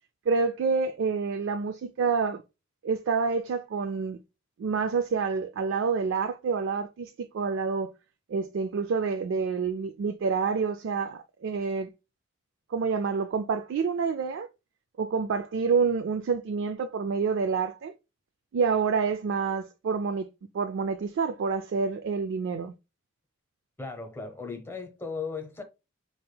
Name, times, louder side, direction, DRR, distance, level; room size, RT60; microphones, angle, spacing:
voice 1, 0.3-2.4 2.8-4.2 4.6-7.9 8.3-11.9 12.7-14.5 15.0-17.9 18.5-20.3 20.5-22.7, right 5 dB, 60° right, 0.3 m, -28 dB
voice 2, 23.8-25.6, left 4 dB, 10° left, 0.8 m, -36 dB
4.4 x 3.4 x 2.2 m
head